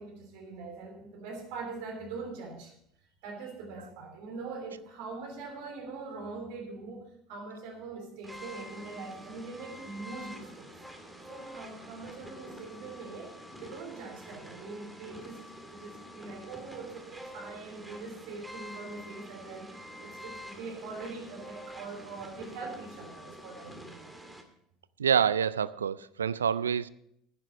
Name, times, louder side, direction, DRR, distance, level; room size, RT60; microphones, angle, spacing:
voice 1, 0.0-2.7 3.2-10.7 11.3-24.1, right 4 dB, 65° right, 3.2 m, -42 dB
sound 1, 8.2-24.4, equal, 5° right, 2.2 m, -47 dB
voice 2, 25.0-26.9, right 8 dB, 85° right, 0.3 m, -27 dB
11.0 x 10.0 x 5.2 m
hypercardioid pair, 70°, 0 cm